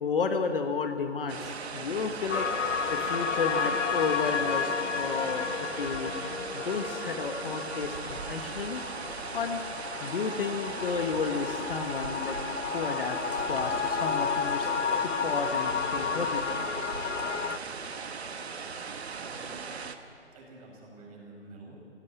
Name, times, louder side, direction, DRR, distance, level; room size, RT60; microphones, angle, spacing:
voice 1, 0.0-2.5 2.9-6.1 6.5-8.8 9.3-9.6 10.0-12.4 12.7-14.7 15.0-16.4, left 5 dB, 50° left, 7 dB, 1.4 m, -32 dB
sound 1, 1.3-20.0, right 5 dB, 60° right, 1.5 m, -38 dB
sound 2, 2.3-17.6, left 6 dB, 85° left, 0.8 m, -32 dB
voice 2, 19.2-19.8 20.3-21.7, right 2 dB, 30° right, 0 dB, 5.4 m, -49 dB
19.5 x 16.5 x 8.4 m, 2.5 s
figure-of-eight pair, 150°, 35 cm